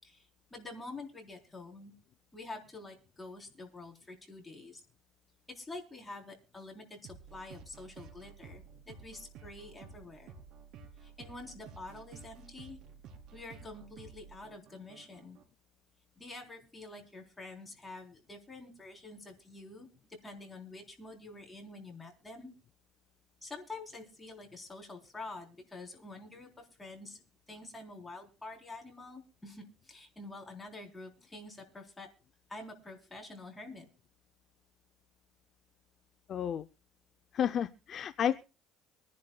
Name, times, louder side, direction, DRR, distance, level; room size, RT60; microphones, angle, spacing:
voice 1, 0.0-1.9 2.3-4.8 5.5-10.3 11.0-12.8 13.3-15.4 16.2-19.9 20.2-22.5 23.4-27.2 27.5-32.1 32.5-33.8, left 2 dB, 10° left, 2 dB, 3.8 m, -47 dB
sound 1, 7.0-15.4, right 6 dB, 65° right, 3.9 m, -52 dB
voice 2, 36.3-36.6 37.3-38.4, left 9 dB, 40° left, 12 dB, 0.5 m, -31 dB
24.5 x 10.5 x 2.3 m, 0.33 s
cardioid pair, 135°, 0 cm